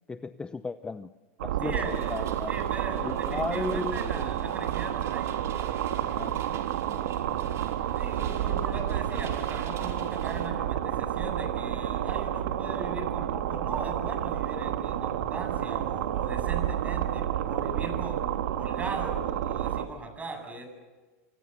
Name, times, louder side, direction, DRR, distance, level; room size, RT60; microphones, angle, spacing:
voice 1, 0.1-1.1 1.4-2.6 3.0-4.4 6.0-7.6, left 4 dB, 10° left, 12 dB, 0.8 m, -36 dB
sound 1, 1.4-19.9, right 11 dB, 80° right, 1.8 m, -30 dB
voice 2, 1.6-5.3 8.0-20.7, right 2 dB, 15° right, 5 dB, 7.9 m, -39 dB
sound 2, 1.9-10.5, right 6 dB, 35° right, 5.2 m, -47 dB
28.0 x 25.5 x 7.0 m, 1.2 s
supercardioid pair, 125°, 8 cm